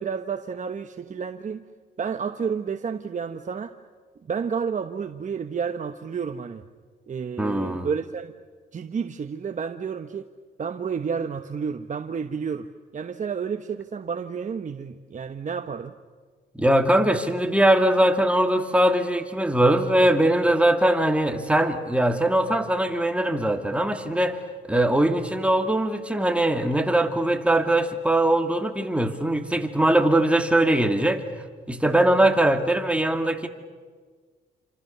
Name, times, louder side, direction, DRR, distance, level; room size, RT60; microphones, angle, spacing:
voice 1, 0.0-1.6 2.0-3.7 4.3-6.6 7.1-8.3 8.7-10.3 10.6-12.7 12.9-15.9, right 6 dB, 40° right, 7 dB, 1.1 m, -30 dB
voice 2, 7.4-7.9 16.6-24.4 24.6-31.2 31.7-33.5, right 1 dB, 5° right, 5 dB, 2.5 m, -21 dB
28.0 x 26.0 x 6.9 m, 1.5 s
cardioid pair, 90°, 20 cm